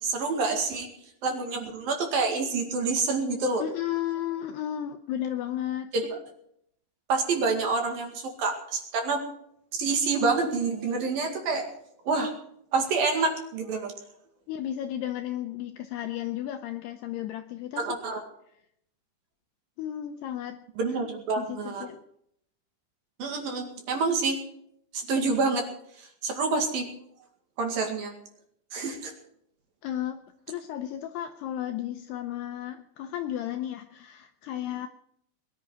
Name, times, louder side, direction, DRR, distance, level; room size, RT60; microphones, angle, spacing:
voice 1, 0.0-0.9 1.2-3.6 5.9-6.1 7.1-9.2 9.7-11.7 12.1-12.3 12.7-13.9 17.8-18.2 20.8-21.9 23.2-24.4 24.9-25.6 26.0-26.9 27.6-28.1 28.7-29.1, right 4 dB, 55° right, 3 dB, 3.5 m, -27 dB
voice 2, 3.6-5.9 14.5-18.0 19.8-21.0 21.4-22.0 29.8-30.2 30.5-34.9, left 11 dB, 85° left, 7 dB, 2.4 m, -33 dB
21.0 x 11.5 x 4.9 m, 0.70 s
omnidirectional pair, 5.6 m